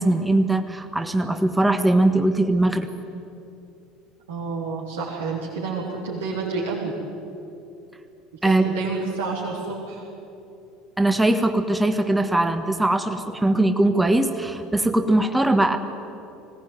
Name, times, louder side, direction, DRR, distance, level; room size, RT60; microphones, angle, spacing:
voice 1, 0.0-2.9 8.4-8.6 11.0-15.8, right 1 dB, 10° right, 7 dB, 1.5 m, -20 dB
voice 2, 4.3-6.9 8.4-10.1, right 4 dB, 80° right, -5 dB, 3.6 m, -29 dB
20.5 x 18.0 x 9.5 m, 2.8 s
hypercardioid pair, 70°, 0 cm